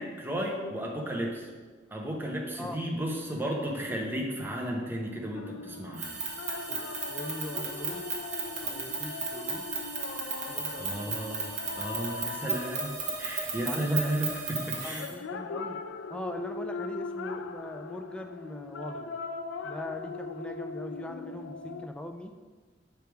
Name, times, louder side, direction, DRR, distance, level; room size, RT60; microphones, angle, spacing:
voice 1, 0.0-1.5 1.9-6.1 10.8-11.5 11.8-12.9 13.2-15.1, right 1 dB, 10° right, -1 dB, 0.8 m, -33 dB
sound 1, 5.3-13.6 15.0-21.9, left 4 dB, 90° left, 0.3 m, -40 dB
sound 2, 5.9-15.1, right 4 dB, 40° right, 1.0 m, -35 dB
voice 2, 6.7-8.0 8.6-9.6 10.4-11.2 13.6-14.1 14.8-15.8 16.1-19.1 19.6-22.3, left 1 dB, 5° left, 4 dB, 0.3 m, -41 dB
6.5 x 3.4 x 4.6 m, 1.4 s
head